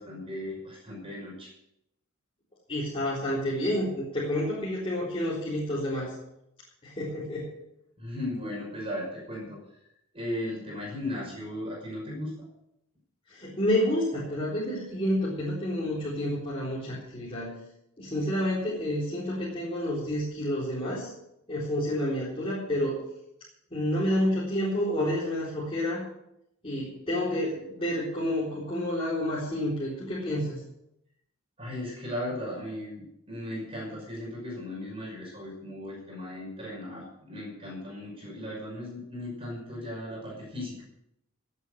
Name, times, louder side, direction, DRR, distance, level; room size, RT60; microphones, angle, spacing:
voice 1, 0.0-1.5 8.0-9.6 10.1-12.5 31.6-40.8, left 1 dB, 25° right, -3 dB, 5.7 m, -36 dB
voice 2, 2.7-6.1 6.8-7.5 13.3-17.5 18.0-21.1 21.5-23.0 23.7-26.0 26.6-30.6, left 1 dB, 25° left, -8 dB, 4.1 m, -29 dB
17.5 x 8.5 x 6.5 m, 0.80 s
head